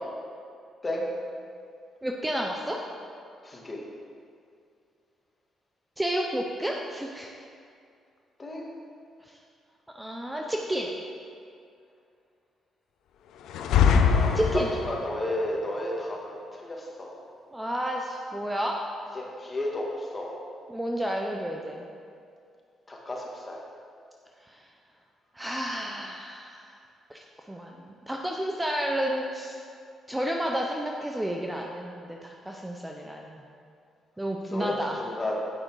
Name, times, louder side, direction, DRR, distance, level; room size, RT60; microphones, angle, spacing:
voice 1, 2.0-2.8 6.0-7.3 9.2-9.4 9.9-10.9 14.3-14.7 17.5-18.8 20.7-21.9 24.5-24.6 25.3-26.7 27.1-29.6 30.1-33.4 34.2-35.0, equal, 10° right, 0 dB, 0.6 m, -31 dB
voice 2, 3.4-3.8 8.4-8.7 14.2-14.3 14.8-17.1 19.1-20.3 22.9-23.6 34.5-35.3, left 1 dB, 25° left, -2 dB, 1.6 m, -33 dB
sound 1, 13.5-15.1, left 6 dB, 85° left, 0.5 m, -22 dB
8.9 x 5.0 x 4.6 m, 2.4 s
cardioid pair, 90°, 0 cm